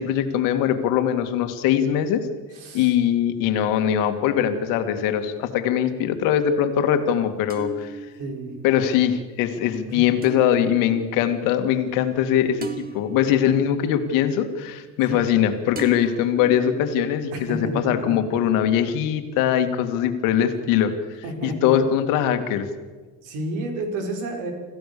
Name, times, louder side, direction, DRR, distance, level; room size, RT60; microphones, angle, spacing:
voice 1, 0.0-2.3 2.7-8.0 8.6-20.9 21.4-22.7, left 9 dB, 80° left, 7 dB, 2.3 m, -22 dB
voice 2, 2.5-2.9 8.2-8.6 9.9-10.0 15.1-15.2 17.3-18.2 21.2-21.7 23.2-24.5, right 2 dB, 70° right, 4 dB, 5.1 m, -30 dB
sound 1, 5.0-5.9 7.5-15.4 15.7-17.8, right 6 dB, 30° right, 1.7 m, -41 dB
26.5 x 15.5 x 6.9 m, 1.4 s
cardioid pair, 180°, 32 cm